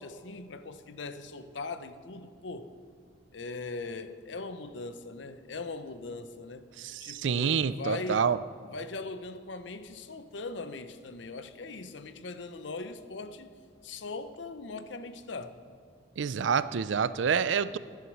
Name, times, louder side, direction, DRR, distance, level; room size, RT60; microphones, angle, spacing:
voice 1, 0.0-2.7 3.3-6.7 7.0-8.3 8.7-13.5 13.8-15.5, left 3 dB, 70° left, 11 dB, 0.7 m, -40 dB
voice 2, 6.8-8.4 16.2-17.8, right 6 dB, 75° right, 15 dB, 0.4 m, -27 dB
11.0 x 10.5 x 6.4 m, 2.2 s
head